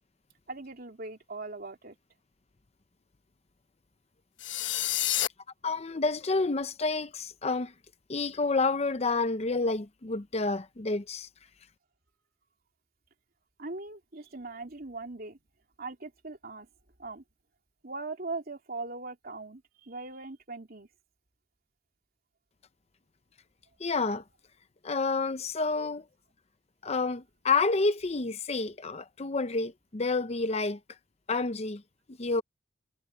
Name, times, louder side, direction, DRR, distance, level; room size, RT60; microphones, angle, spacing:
voice 1, 0.5-2.0 13.6-15.4 15.8-16.7 17.0-17.2 17.8-20.9, right 3 dB, 55° right, 3.2 m, -40 dB
sound 1, 4.4-5.3, left 13 dB, 85° left, 1.0 m, -28 dB
voice 2, 5.6-7.7 8.1-11.3 23.8-24.2 24.8-26.0 26.8-30.8 31.3-31.8 32.1-32.4, left 3 dB, 35° left, 0.7 m, -29 dB
head